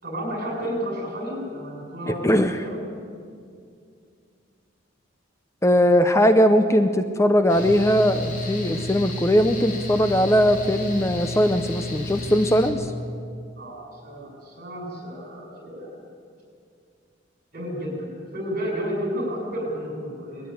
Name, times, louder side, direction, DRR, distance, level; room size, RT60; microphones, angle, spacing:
voice 1, 0.0-2.8 13.6-16.0 17.5-20.5, equal, 50° right, 0 dB, 6.8 m, -31 dB
voice 2, 2.1-2.6 5.6-12.9, equal, 15° left, 9 dB, 0.6 m, -20 dB
Mechanical fan, 7.5-12.7, left 2 dB, 45° left, 2.7 m, -32 dB
20.5 x 14.0 x 9.5 m, 2.3 s
head